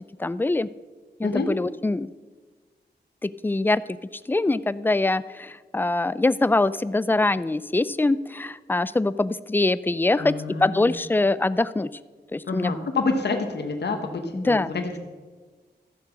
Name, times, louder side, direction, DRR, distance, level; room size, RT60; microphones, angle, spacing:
voice 1, 0.2-0.7 1.2-2.1 3.2-3.8 4.3-10.3 10.6-11.9 12.3-12.8 14.3-14.7, left 2 dB, 10° left, 16 dB, 0.3 m, -23 dB
voice 2, 10.2-10.9 12.4-15.0, left 3 dB, 75° left, 4 dB, 1.2 m, -28 dB
13.5 x 7.7 x 5.9 m, 1.4 s
wide cardioid pair, 125°, 18 cm